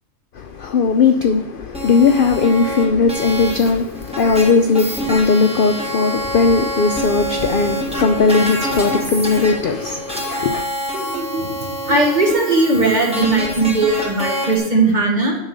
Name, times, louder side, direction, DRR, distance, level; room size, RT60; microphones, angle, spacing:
voice 1, 0.4-10.7, left 4 dB, 60° left, 0.5 m, -17 dB
sound 1, 1.7-14.6, equal, 5° right, 1.6 m, -26 dB
voice 2, 10.9-15.4, right 2 dB, 35° right, 1.6 m, -18 dB
10.0 x 4.0 x 6.6 m
omnidirectional pair, 1.4 m